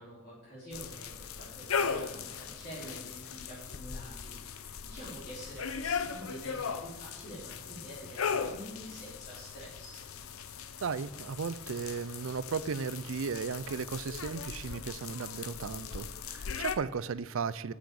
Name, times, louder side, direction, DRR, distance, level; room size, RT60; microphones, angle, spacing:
voice 1, 0.0-10.0, equal, 45° left, 4.0 m, -47 dB
sound 1, 0.7-16.8, left 6 dB, 85° left, 0.7 m, -38 dB
voice 2, 10.8-17.7, right 5 dB, 70° right, 0.5 m, -35 dB
10.5 x 8.3 x 4.8 m
head